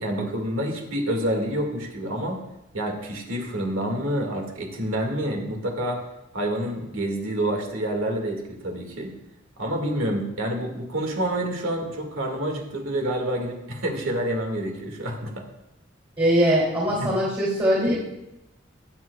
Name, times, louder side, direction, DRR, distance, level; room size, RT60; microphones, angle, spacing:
voice 1, 0.0-2.4 2.7-6.0 6.3-9.1 9.6-15.4 17.0-17.1, right 1 dB, 85° right, 2 dB, 2.1 m, -28 dB
voice 2, 16.2-18.0, equal, 25° right, -8 dB, 3.0 m, -21 dB
21.0 x 7.7 x 2.4 m, 0.91 s
head